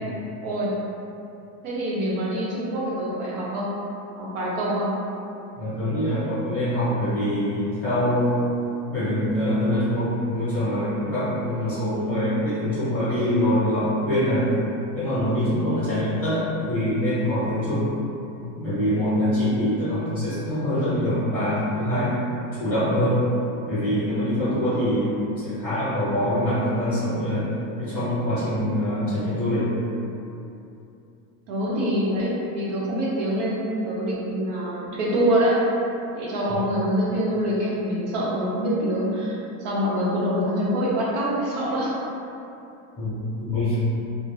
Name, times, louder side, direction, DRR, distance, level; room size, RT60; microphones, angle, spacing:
voice 1, 1.6-3.7 4.2-4.9 31.5-35.6 36.1-41.9, equal, 65° right, -6 dB, 0.9 m, -25 dB
voice 2, 5.6-8.4 8.9-14.5 14.9-17.9 18.3-22.2 22.6-23.2 23.6-27.5 27.8-29.7 43.0-43.1 43.4-43.8, equal, 10° left, -14 dB, 1.0 m, -24 dB
2.3 x 2.1 x 3.2 m, 2.8 s
supercardioid pair, 155°, 43 cm